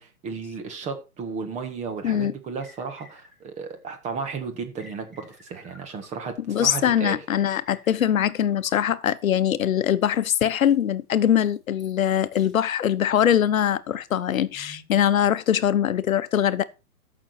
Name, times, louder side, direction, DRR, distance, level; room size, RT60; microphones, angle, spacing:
voice 1, 0.0-7.2, right 5 dB, 15° right, 1.6 m, -34 dB
sound 1, 2.6-3.7 4.8-6.6 7.3-9.4 10.0-10.8 11.4-12.1 12.3-12.6 13.1-13.3 14.0-15.9, left 2 dB, ahead, 2.0 m, -53 dB
voice 2, 6.5-16.6, left 10 dB, 65° left, 1.0 m, -22 dB
14.0 x 6.4 x 4.4 m
hypercardioid pair, 145°, 44 cm